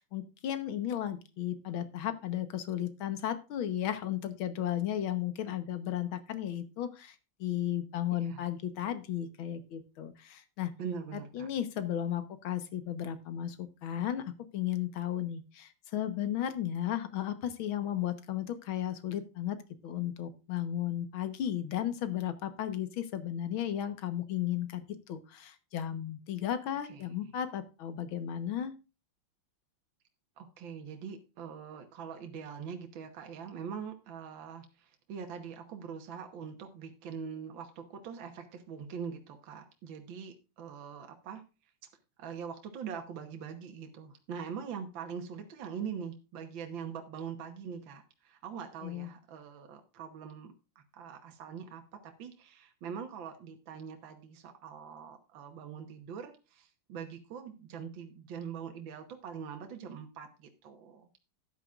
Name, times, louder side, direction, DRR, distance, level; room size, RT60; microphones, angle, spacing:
voice 1, 0.0-7.2 7.4-10.7 11.1-19.6 19.8-28.7 48.8-49.1, left 11 dB, 70° left, 11 dB, 1.9 m, -34 dB
voice 2, 8.1-8.5 10.8-11.5 26.9-27.1 30.4-41.4 42.2-61.2, right 7 dB, 65° right, 4 dB, 1.9 m, -43 dB
13.0 x 10.0 x 2.4 m, 0.30 s
omnidirectional pair, 2.3 m